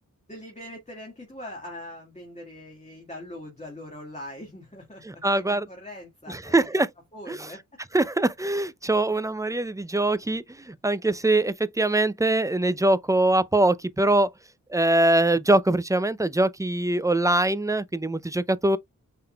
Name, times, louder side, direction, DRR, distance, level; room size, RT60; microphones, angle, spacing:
voice 1, 0.3-5.0 5.3-6.8 7.1-7.6, left 1 dB, 20° left, 1.7 m, -41 dB
voice 2, 5.1-5.7 6.3-6.9 7.3-7.5 7.9-14.3 14.7-18.8, right 2 dB, 10° right, 0.4 m, -23 dB
5.6 x 3.7 x 2.3 m
wide cardioid pair, 50°, 33 cm